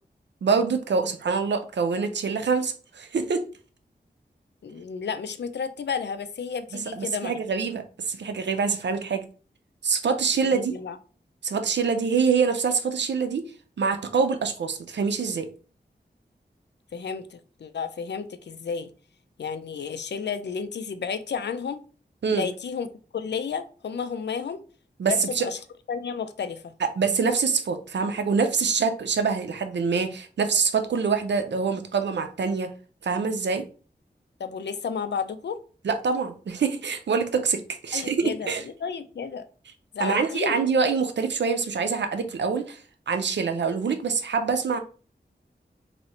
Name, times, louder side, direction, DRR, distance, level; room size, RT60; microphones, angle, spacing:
voice 1, 0.4-3.4 6.7-9.2 9.8-10.7 11.4-13.4 13.8-15.5 22.2-22.5 25.0-25.5 26.8-32.7 33.0-33.6 35.8-38.6 40.0-42.8 43.1-44.8, right 5 dB, 90° right, 0.6 m, -25 dB
voice 2, 4.6-7.4 10.4-11.0 16.9-18.9 19.4-21.8 22.3-22.9 23.1-24.6 25.1-25.6 25.9-26.7 34.4-35.6 37.9-39.5 39.9-40.6, left 6 dB, 80° left, 0.4 m, -32 dB
3.0 x 2.7 x 4.2 m
wide cardioid pair, 70°, 18 cm